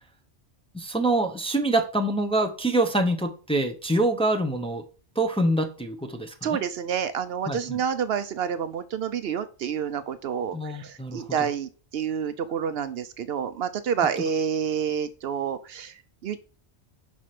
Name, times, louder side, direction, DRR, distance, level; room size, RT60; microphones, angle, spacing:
voice 1, 0.7-4.8 5.2-6.6 7.5-7.8 10.5-11.3, right 2 dB, 5° left, 4 dB, 0.7 m, -25 dB
voice 2, 6.4-16.4, right 7 dB, 70° right, 12 dB, 0.8 m, -29 dB
5.2 x 4.9 x 5.8 m, 0.38 s
omnidirectional pair, 1.1 m